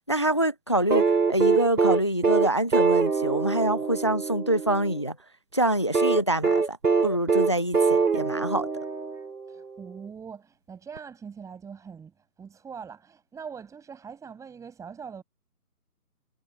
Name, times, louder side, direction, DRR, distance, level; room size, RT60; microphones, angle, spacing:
voice 1, 0.1-1.0 1.3-5.2 5.5-6.8 7.0-8.7, right 1 dB, 20° left, 0.5 m, -25 dB
sound 1, 0.9-5.0 5.9-9.5 11.0-11.1, right 5 dB, 85° right, 2.8 m, -24 dB
voice 2, 9.5-15.2, right 6 dB, 5° right, 7.5 m, -42 dB
figure-of-eight pair, 145°, 46 cm